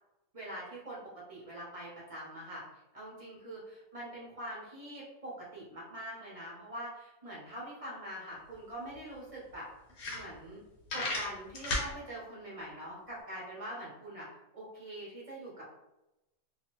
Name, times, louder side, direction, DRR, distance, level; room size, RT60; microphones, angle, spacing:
voice 1, 0.3-9.7 10.1-10.6 10.9-14.3 14.5-15.8, right 1 dB, 35° right, -6 dB, 0.6 m, -44 dB
sound 1, 8.5-8.6 8.9-9.0 9.5-9.6 9.9-10.6 10.9-11.9, left 2 dB, 75° left, 1.3 m, -34 dB
2.8 x 2.4 x 2.9 m, 0.94 s
omnidirectional pair, 1.6 m